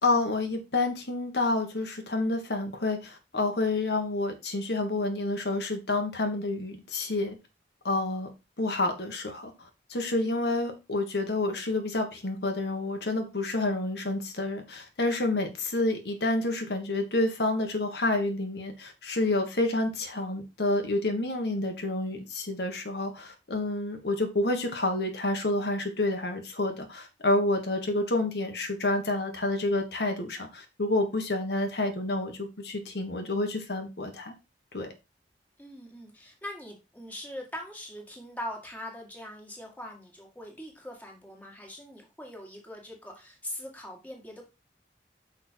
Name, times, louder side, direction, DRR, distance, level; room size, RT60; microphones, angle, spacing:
voice 1, 0.0-7.3 7.8-8.3 8.6-34.3 34.7-34.9, left 2 dB, 70° left, 4 dB, 1.4 m, -29 dB
voice 2, 35.6-44.5, left 1 dB, 10° left, 1 dB, 1.9 m, -42 dB
6.3 x 5.2 x 4.5 m, 0.27 s
head